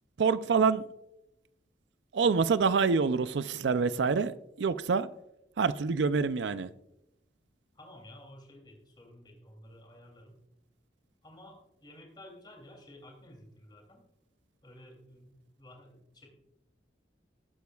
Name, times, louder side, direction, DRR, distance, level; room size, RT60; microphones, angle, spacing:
voice 1, 0.2-0.9 2.1-5.1 5.6-6.7, right 5 dB, 80° right, 0.5 m, -26 dB
voice 2, 7.7-10.3 11.2-14.0 14.6-16.3, left 1 dB, 25° left, 2.9 m, -53 dB
19.0 x 9.4 x 2.3 m
head